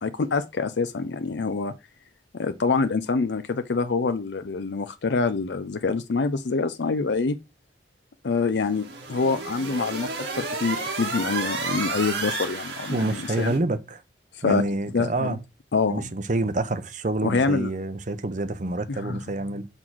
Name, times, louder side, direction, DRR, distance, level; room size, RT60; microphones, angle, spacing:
voice 1, 0.0-1.7 2.3-7.4 8.2-13.5 14.4-14.6 14.9-15.4 15.7-16.1 17.2-17.7 18.9-19.2, left 4 dB, 75° left, 0.5 m, -26 dB
sound 1, 8.6-13.6, right 3 dB, 85° right, 1.8 m, -32 dB
voice 2, 12.9-14.0 14.4-15.4 15.9-19.7, right 2 dB, 45° right, 0.7 m, -27 dB
6.5 x 3.8 x 6.1 m
head